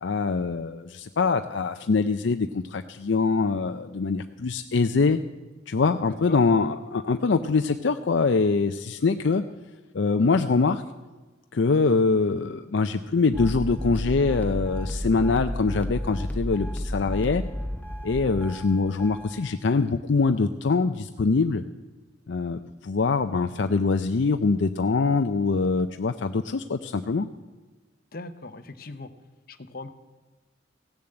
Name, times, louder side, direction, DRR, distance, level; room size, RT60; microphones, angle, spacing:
voice 1, 0.0-5.2 5.7-9.4 9.9-10.8 11.5-17.4 18.0-21.6 22.3-27.3, left 4 dB, 70° left, 8 dB, 0.5 m, -24 dB
sound 1, 13.3-19.5, equal, 10° left, 0.7 m, -32 dB
voice 2, 28.1-29.1 29.5-29.9, left 2 dB, 50° left, 9 dB, 0.8 m, -39 dB
16.5 x 7.0 x 7.8 m, 1.3 s
head